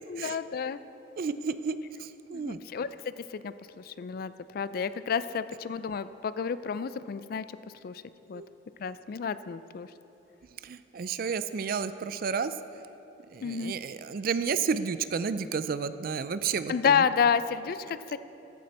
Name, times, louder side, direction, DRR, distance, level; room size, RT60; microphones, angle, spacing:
voice 1, 0.1-0.8 2.3-2.9 3.2-7.4 7.8-8.0 8.3-8.4 8.8-9.9 13.4-13.7 16.7-18.2, left 6 dB, 50° left, 14 dB, 0.3 m, -30 dB
voice 2, 1.2-2.6 8.3-8.5 10.6-12.5 13.3-17.0, right 5 dB, 50° right, 13 dB, 0.4 m, -31 dB
14.5 x 7.5 x 4.2 m, 3.0 s
head